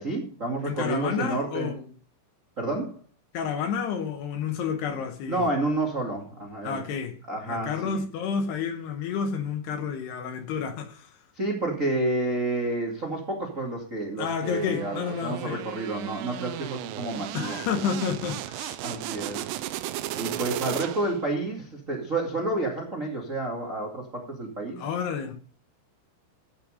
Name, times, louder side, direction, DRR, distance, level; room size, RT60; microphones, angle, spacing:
voice 1, 0.0-1.8 2.6-3.0 5.3-7.0 7.3-8.0 11.3-17.6 18.8-19.5 20.1-24.8, right 2 dB, 55° right, 0.8 m, -30 dB
voice 2, 0.6-1.8 3.3-5.5 6.6-7.2 7.5-11.1 14.2-15.6 17.3-18.8 24.8-25.3, left 6 dB, 70° left, 2.7 m, -30 dB
sound 1, 14.4-21.3, right 14 dB, 85° right, 3.4 m, -35 dB
14.5 x 7.2 x 5.0 m
omnidirectional pair, 5.8 m